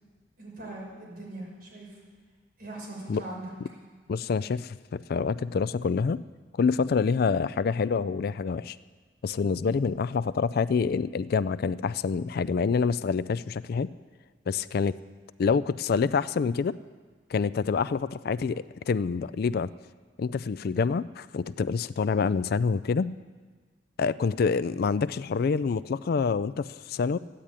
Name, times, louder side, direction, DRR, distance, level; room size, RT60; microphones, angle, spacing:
voice 1, 0.4-2.0 2.6-3.5, right 2 dB, 60° right, -4 dB, 5.7 m, -40 dB
voice 2, 4.1-6.2 6.6-8.8 9.2-13.9 14.5-14.9 15.4-16.8 17.3-19.7 20.2-23.2 24.0-27.2, left 5 dB, 60° left, 16 dB, 0.4 m, -27 dB
14.0 x 10.0 x 8.8 m, 1.5 s
head